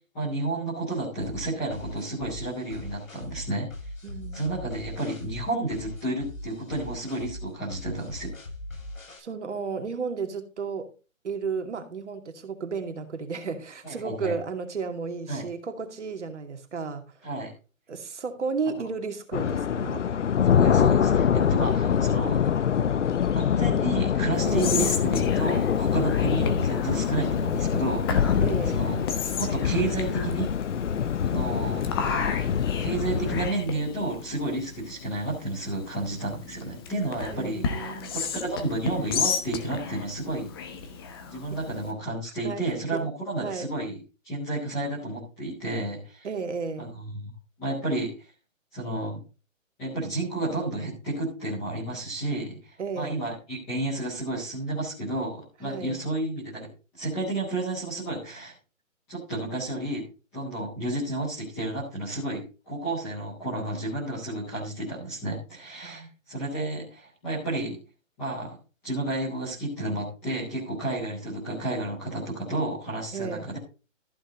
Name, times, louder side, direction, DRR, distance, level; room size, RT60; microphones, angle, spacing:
voice 1, 0.1-3.7 4.3-8.3 13.8-14.3 15.3-15.4 17.2-17.5 20.5-22.4 23.3-28.1 28.6-29.0 29.3-30.5 31.2-31.8 32.8-37.6 38.1-40.5 41.3-44.0 44.2-46.3 46.8-47.3 47.6-48.3 48.7-49.2 49.8-56.7 56.9-58.5 59.1-60.0 60.3-67.8 68.2-68.6 68.8-73.6, right 2 dB, ahead, 0.6 m, -31 dB
sound 1, 1.2-9.2, left 1 dB, 80° left, 7.4 m, -40 dB
voice 2, 4.0-4.9 9.2-10.9 11.2-17.1 17.9-20.0 24.4-24.8 28.4-28.9 31.3-31.7 37.3-38.2 41.5-41.6 42.4-42.6 42.9-43.0 43.4-43.7 46.2-46.9 52.8-53.1 55.6-56.0 65.8-66.1 73.1-73.5, right 5 dB, 60° right, 2.6 m, -33 dB
sound 2, 19.3-33.5, left 8 dB, 65° left, 0.8 m, -24 dB
Whispering, 24.3-41.9, left 5 dB, 20° left, 1.1 m, -34 dB
14.5 x 6.4 x 3.9 m
hypercardioid pair, 160°, 39 cm